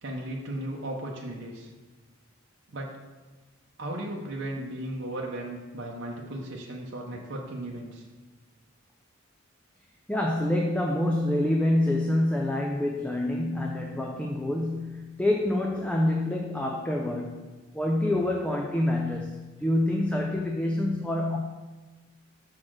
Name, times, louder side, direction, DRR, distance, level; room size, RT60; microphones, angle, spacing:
voice 1, 0.0-1.7 2.7-3.0 3.8-8.0, right 1 dB, 55° right, -2 dB, 0.8 m, -36 dB
voice 2, 10.1-17.5 17.7-21.4, left 1 dB, 5° left, 0 dB, 0.4 m, -27 dB
6.3 x 4.0 x 6.2 m, 1.3 s
head